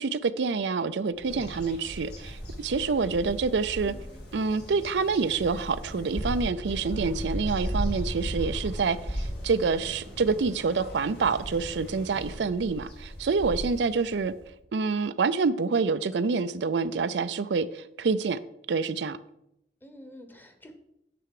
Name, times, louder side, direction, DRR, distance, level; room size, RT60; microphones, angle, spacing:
voice 1, 0.0-3.9 4.3-14.3 14.7-18.4 18.7-19.2, right 4 dB, 80° right, 12 dB, 0.5 m, -27 dB
Bird vocalization bird call bird song, 1.2-14.5, equal, 70° left, 4.4 m, -36 dB
voice 2, 3.8-4.2 14.0-14.2 19.8-20.7, left 1 dB, 10° left, 6 dB, 1.2 m, -48 dB
9.9 x 6.9 x 4.8 m, 0.80 s
head